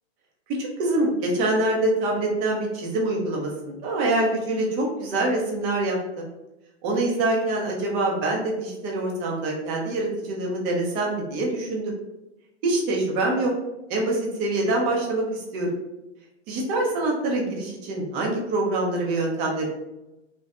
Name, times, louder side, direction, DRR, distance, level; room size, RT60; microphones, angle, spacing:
voice 1, 0.6-6.2 6.8-11.9 12.6-13.5 13.9-15.7 16.5-19.7, right 2 dB, 35° right, -1 dB, 0.7 m, -25 dB
2.5 x 2.2 x 2.4 m, 0.95 s
hypercardioid pair, 120°, 36 cm